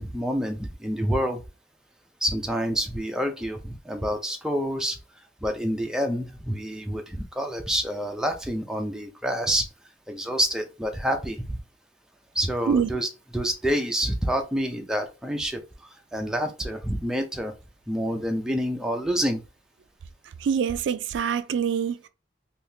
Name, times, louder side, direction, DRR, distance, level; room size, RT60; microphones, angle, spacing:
voice 1, 0.0-1.4 2.2-5.0 5.4-9.7 10.1-11.6 12.3-15.6 16.1-17.6 17.9-19.4, equal, 5° right, 0.4 m, -27 dB
voice 2, 20.4-22.1, right 7 dB, 80° right, 0.3 m, -25 dB
3.6 x 2.7 x 2.7 m
head